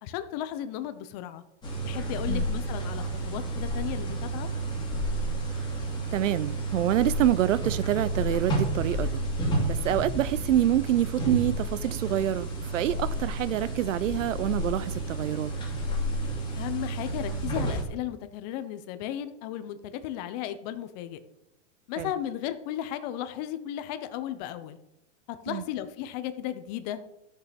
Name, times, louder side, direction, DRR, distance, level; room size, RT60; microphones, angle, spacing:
voice 1, 0.0-1.4 1.8-4.5 16.5-21.2 21.9-24.8 25.4-27.0, left 11 dB, 35° left, 0.9 m, -35 dB
sound 1, 1.6-17.8, right 1 dB, 10° left, 2.5 m, -31 dB
voice 2, 6.1-9.2 9.7-15.5 22.0-22.1 25.5-25.6, right 12 dB, 85° right, 0.8 m, -26 dB
13.5 x 6.8 x 5.3 m
supercardioid pair, 160°, 37 cm